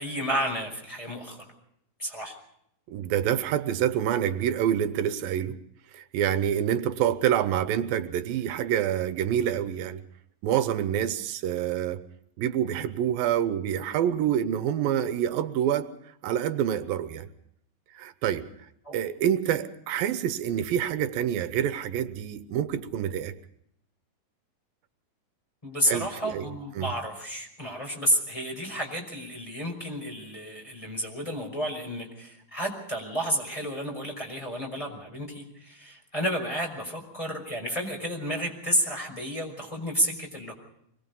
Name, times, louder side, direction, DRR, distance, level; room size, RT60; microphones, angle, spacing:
voice 1, 0.0-1.5 2.0-2.4 18.8-19.0 25.6-40.5, equal, 10° left, 0 dB, 5.4 m, -31 dB
voice 2, 2.9-5.6 5.9-10.0 10.4-12.0 12.4-15.9 16.2-17.3 17.9-18.4 18.9-23.3 25.9-26.9, right 10 dB, 85° right, 11 dB, 2.8 m, -27 dB
25.0 x 21.5 x 5.4 m, 0.72 s
omnidirectional pair, 4.0 m